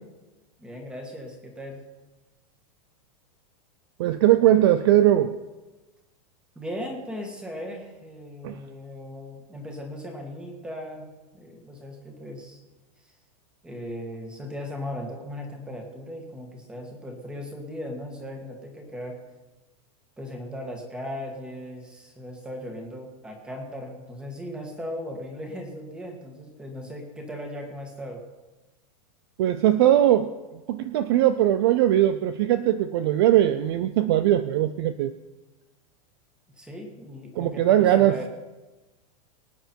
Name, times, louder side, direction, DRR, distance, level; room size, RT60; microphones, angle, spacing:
voice 1, 0.6-1.8 6.6-11.1 11.3-12.6 13.6-19.2 20.2-28.2 36.6-38.3, equal, 5° right, 2 dB, 1.8 m, -37 dB
voice 2, 4.0-5.3 8.4-8.6 29.4-30.3 30.7-35.1 37.4-38.2, right 12 dB, 40° right, 12 dB, 0.5 m, -20 dB
24.0 x 9.3 x 4.5 m, 1.2 s
supercardioid pair, 175°, 19 cm